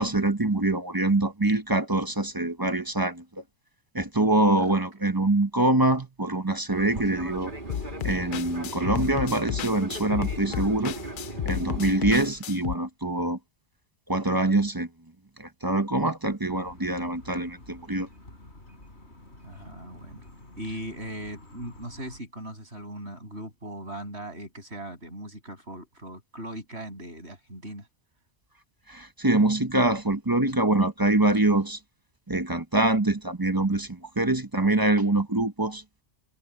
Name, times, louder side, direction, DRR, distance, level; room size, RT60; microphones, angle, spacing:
voice 1, 0.0-3.4 3.9-7.5 8.0-10.9 11.4-13.4 14.1-14.9 15.4-18.1 28.9-31.8 32.3-35.8, right 2 dB, 20° right, 0.9 m, -24 dB
Fixed-wing aircraft airplane, 6.7-12.3, right 2 dB, 50° right, 2.8 m, -38 dB
sound 1, 7.7-12.8, left 10 dB, 60° left, 0.6 m, -32 dB
sound 2, 16.5-22.2, left 1 dB, 85° left, 5.7 m, -49 dB
voice 2, 19.4-20.2 20.6-27.9, right 1 dB, 80° right, 8.3 m, -39 dB
omnidirectional pair, 1.1 m